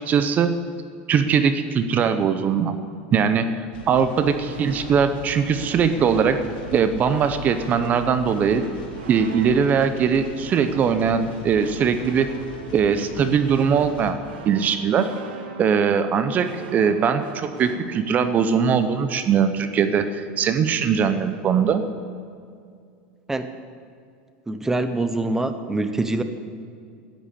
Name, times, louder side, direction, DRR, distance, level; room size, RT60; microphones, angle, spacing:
voice 1, 0.1-0.5 1.1-2.7 3.1-6.4 6.7-8.6 9.1-12.3 12.7-14.2 14.4-15.1 15.6-21.8, right 6 dB, 30° right, 11 dB, 0.8 m, -21 dB
sound 1, 3.7-14.1, left 4 dB, 85° left, 2.6 m, -39 dB
sound 2, 4.4-17.8, right 6 dB, 90° right, 1.6 m, -41 dB
voice 2, 24.5-26.2, right 2 dB, 10° right, 9 dB, 0.9 m, -24 dB
11.5 x 10.5 x 8.5 m, 2.3 s
supercardioid pair, 135°, 5 cm